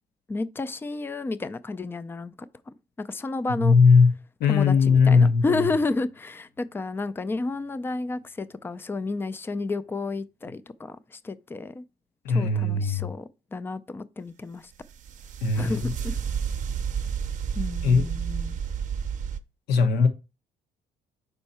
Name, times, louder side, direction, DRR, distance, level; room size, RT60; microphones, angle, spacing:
voice 1, 0.3-2.3 2.7-3.7 4.5-11.8 12.3-14.7 15.6-16.1 17.5-18.6, left 3 dB, 15° left, 0.4 m, -31 dB
voice 2, 3.5-4.1 4.4-5.7 12.2-13.1 15.4-15.9 17.8-18.1 19.7-20.1, left 5 dB, 75° left, 1.1 m, -19 dB
sound 1, 4.8-6.3 6.6-8.4, left 3 dB, 90° left, 3.0 m, -50 dB
sound 2, 14.8-19.4, right 7 dB, 50° right, 0.6 m, -31 dB
5.6 x 4.4 x 4.2 m
cardioid pair, 110°, 17 cm